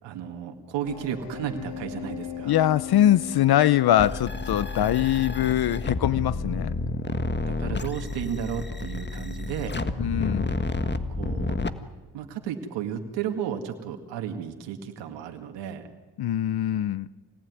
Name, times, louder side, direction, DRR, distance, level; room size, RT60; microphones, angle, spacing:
voice 1, 0.0-2.5 7.5-9.8 11.1-11.6 12.1-15.9, right 8 dB, 85° right, 2.1 m, -33 dB
sound 1, 0.8-7.4, left 10 dB, 75° left, 3.1 m, -40 dB
voice 2, 2.4-6.7 10.0-10.5 16.2-17.1, left 12 dB, 60° left, 0.8 m, -22 dB
sound 2, 4.0-11.7, left 3 dB, 25° left, 1.7 m, -30 dB
26.5 x 18.5 x 9.4 m
supercardioid pair, 60°, 42 cm